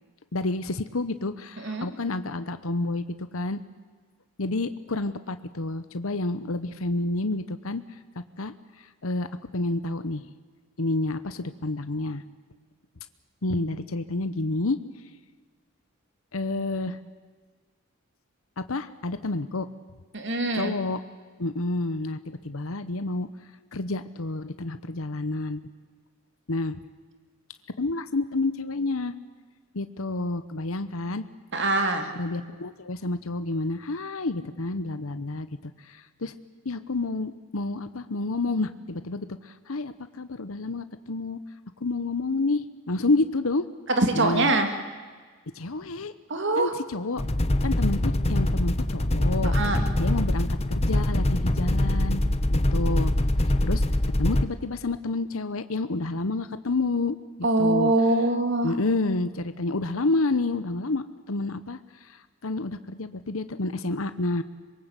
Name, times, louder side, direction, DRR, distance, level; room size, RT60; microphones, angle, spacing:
voice 1, 0.3-3.0 3.3-3.6 4.4-7.8 8.4-8.5 9.0-9.3 9.5-10.3 10.8-12.2 13.4-14.8 16.3-17.0 18.6-19.7 20.5-21.0 21.4-23.3 23.7-25.6 26.5-26.8 27.8-29.1 29.7-31.2 32.2-36.3 36.6-41.4 41.8-43.7 44.1-44.5 45.5-46.1 46.6-47.2 47.6-49.5 50.0-52.2 52.5-53.1 53.6-53.8 54.2-57.2 57.6-57.9 58.6-61.8 62.4-64.4, left 2 dB, 75° left, 11 dB, 1.0 m, -29 dB
voice 2, 1.6-1.9 20.1-20.7 31.5-32.1 44.0-44.7 46.3-46.7 49.4-49.8 57.4-58.7, right 2 dB, 55° right, 6 dB, 2.8 m, -23 dB
sound 1, 47.2-54.5, left 1 dB, 30° left, 1.1 m, -24 dB
25.5 x 22.5 x 8.2 m, 1.5 s
head